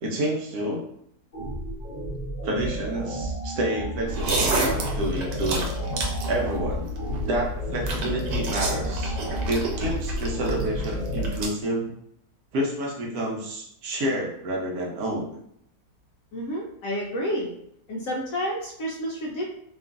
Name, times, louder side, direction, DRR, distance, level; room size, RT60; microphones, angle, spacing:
voice 1, 0.0-0.8 2.4-5.6 6.3-9.2 9.5-11.9 12.5-15.4, right 1 dB, 70° right, -1 dB, 1.1 m, -29 dB
sound 1, 1.3-11.3, right 1 dB, 40° left, 0.7 m, -33 dB
sound 2, 4.1-11.5, equal, 90° right, 1.3 m, -29 dB
voice 2, 16.3-17.5 17.9-19.4, equal, 70° left, -2 dB, 0.8 m, -30 dB
2.9 x 2.4 x 2.4 m, 0.73 s
omnidirectional pair, 1.8 m